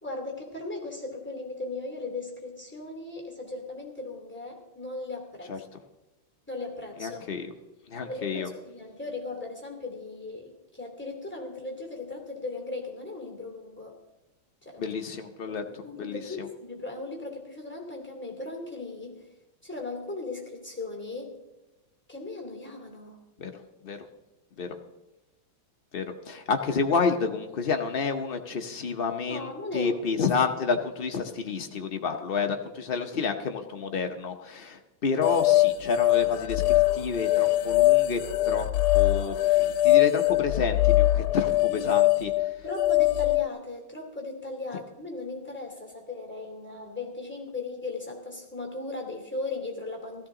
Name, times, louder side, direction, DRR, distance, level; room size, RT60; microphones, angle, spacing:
voice 1, 0.0-5.5 6.5-7.3 8.0-13.9 14.6-14.8 15.5-19.2 19.6-21.3 22.1-23.2 29.3-30.0 41.7-41.9 42.6-50.3, left 3 dB, 5° left, 2 dB, 2.6 m, -37 dB
voice 2, 7.0-7.5 7.9-8.5 14.8-15.6 16.0-16.5 23.4-24.0 24.6-24.8 25.9-38.7 38.9-42.3, left 5 dB, 65° left, 5 dB, 0.5 m, -30 dB
sound 1, 35.2-43.5, left 16 dB, 85° left, 1.4 m, -22 dB
16.0 x 14.0 x 3.8 m, 1.1 s
omnidirectional pair, 2.2 m